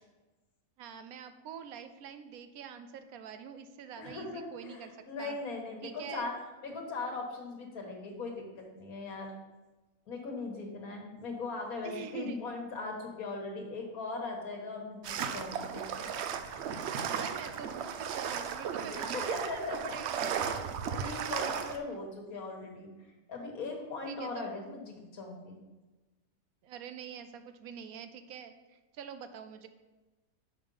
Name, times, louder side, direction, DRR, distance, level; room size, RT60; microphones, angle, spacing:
voice 1, 0.8-4.9 5.2-5.4 5.8-6.3 11.8-12.4 17.2-20.5 24.1-24.5 26.6-29.7, right 7 dB, 80° right, 9 dB, 1.1 m, -45 dB
voice 2, 4.0-6.4 6.6-9.3 10.1-16.1 18.9-20.0 20.3-20.7 21.0-22.9 23.3-25.6, left 3 dB, 75° left, 1 dB, 1.7 m, -39 dB
sound 1, 15.0-21.8, right 7 dB, 65° right, 0.7 m, -35 dB
6.1 x 5.1 x 5.3 m, 1.2 s
omnidirectional pair, 1.5 m